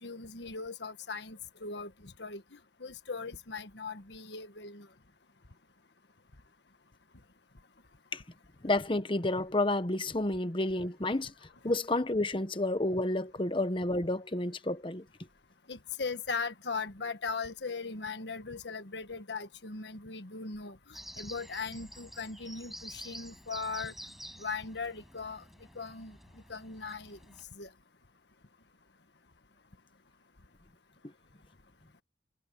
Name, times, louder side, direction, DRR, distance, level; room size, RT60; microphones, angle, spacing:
voice 1, 0.0-4.9 15.7-23.9 24.4-25.4 25.7-26.2 26.5-27.2 27.5-27.7, left 4 dB, 70° left, 1.5 m, -39 dB
voice 2, 8.6-11.3 11.6-15.0, left 2 dB, 30° left, 1.1 m, -30 dB
sound 1, 20.9-27.4, equal, ahead, 7.1 m, -49 dB
head